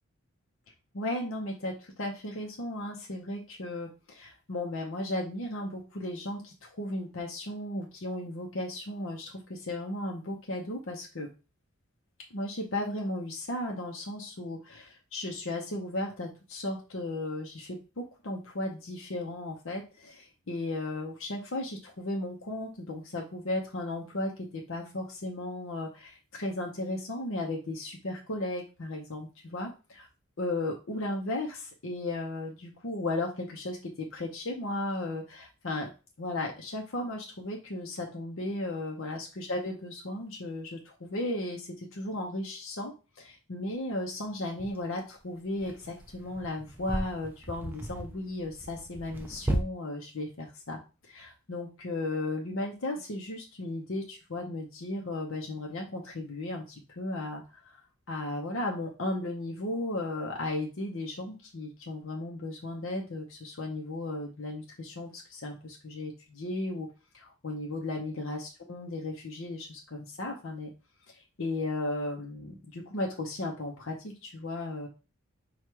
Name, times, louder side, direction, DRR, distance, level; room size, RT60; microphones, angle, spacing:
voice 1, 0.9-11.3 12.3-29.7 30.4-35.9 36.2-57.8 58.1-66.9 67.1-70.7 71.1-74.9, left 2 dB, 60° left, 0 dB, 0.7 m, -35 dB
sound 1, 43.6-43.7 44.6-44.8 45.5-49.6, right 1 dB, 10° right, 0.4 m, -35 dB
4.5 x 2.4 x 4.6 m, 0.31 s
head